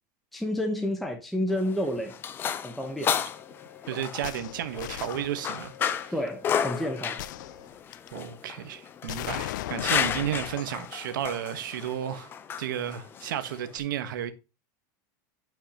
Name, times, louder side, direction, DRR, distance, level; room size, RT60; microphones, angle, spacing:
voice 1, 0.3-2.1 2.6-3.2 6.1-7.2, left 1 dB, ahead, 1.0 m, -30 dB
sound 1, 1.5-13.8, left 8 dB, 20° left, 0.6 m, -33 dB
Wind instrument woodwind instrument, 3.3-7.7, left 9 dB, 50° left, 2.2 m, -52 dB
voice 2, 3.9-5.7 6.0-6.1 8.1-12.3 12.6-14.3, right 10 dB, 90° right, 1.2 m, -33 dB
day at the range, 4.2-5.8 7.2-8.2 9.1-10.9 11.2-11.3, left 14 dB, 70° left, 0.5 m, -37 dB
10.0 x 5.8 x 2.9 m
supercardioid pair, 165°, 10 cm